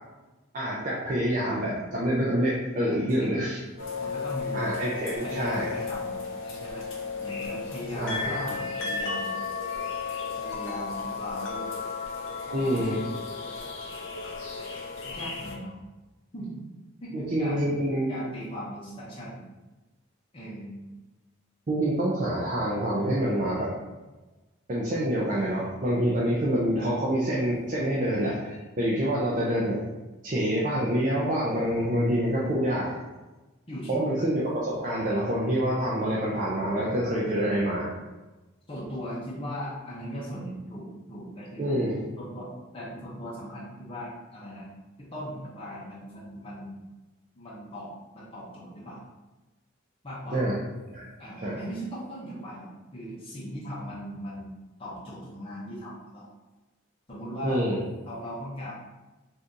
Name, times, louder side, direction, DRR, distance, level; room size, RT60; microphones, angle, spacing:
voice 1, 0.5-3.6 4.5-5.7 7.9-8.4 12.5-13.0 17.1-18.3 21.7-23.7 24.7-29.9 30.2-33.0 33.9-37.9 41.6-42.0 50.3-50.6 50.9-51.1 51.4-51.6 57.4-57.8, equal, 35° right, -6 dB, 0.4 m, -27 dB
voice 2, 1.4-1.9 2.9-3.5 4.0-4.7 5.2-6.9 7.2-9.4 10.4-11.7 12.4-13.2 15.0-15.8 16.3-16.6 17.0-17.8 18.1-19.4 20.3-20.8 26.8-27.0 33.7-34.1 38.7-41.8 42.2-44.7 45.0-46.8 47.3-49.0 50.0-50.4 51.2-54.5 54.8-56.3 57.1-57.6 58.1-58.7, equal, 25° left, -8 dB, 0.7 m, -39 dB
sound 1, 3.8-15.6, left 4 dB, 60° left, 0.5 m, -34 dB
2.7 x 2.6 x 3.6 m, 1.1 s
head